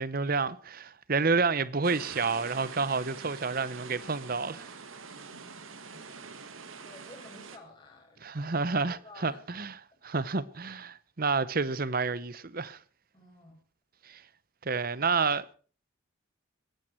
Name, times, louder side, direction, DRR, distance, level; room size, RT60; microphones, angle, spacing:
voice 1, 0.0-4.7 8.2-9.7 10.0-12.8 14.0-14.2 14.6-15.5, right 4 dB, 45° right, 0.8 m, -29 dB
sound 1, 1.8-7.6, right 5 dB, 75° right, 1.7 m, -45 dB
voice 2, 5.3-6.0 6.8-9.4 13.1-13.6, left 2 dB, 20° left, 6.4 m, -53 dB
19.0 x 15.0 x 4.5 m
head